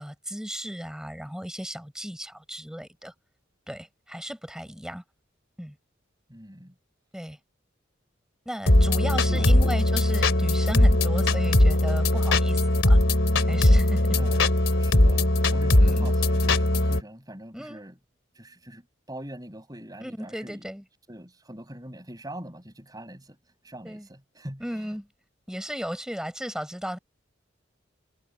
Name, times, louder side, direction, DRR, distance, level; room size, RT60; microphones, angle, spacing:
voice 1, 0.0-3.1 3.7-5.0 5.6-5.8 7.1-7.4 8.5-13.0 13.5-14.2 15.8-16.1 17.5-17.8 20.0-20.8 23.8-24.1 24.6-25.1 25.5-27.0, equal, 5° right, 7.1 m, -35 dB
voice 2, 6.3-6.7 9.1-9.8 14.1-14.4 14.7-17.9 18.3-18.8 19.1-20.6 21.1-23.4 23.6-24.9, right 1 dB, 20° right, 6.5 m, -42 dB
sound 1, 8.7-17.0, left 1 dB, 85° left, 2.9 m, -20 dB
head